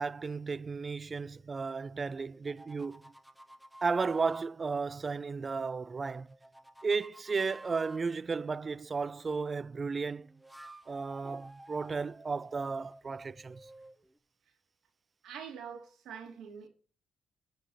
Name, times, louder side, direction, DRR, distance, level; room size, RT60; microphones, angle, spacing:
voice 1, 0.0-3.0 3.8-6.3 6.8-10.3 10.9-13.6, right 4 dB, 35° right, 0.4 m, -34 dB
sound 1, 2.2-4.5 6.0-8.0 10.2-14.2, right 1 dB, 5° right, 0.7 m, -53 dB
voice 2, 15.2-16.7, right 7 dB, 75° right, 2.9 m, -44 dB
9.9 x 5.3 x 5.8 m
cardioid pair, 90°, 0 cm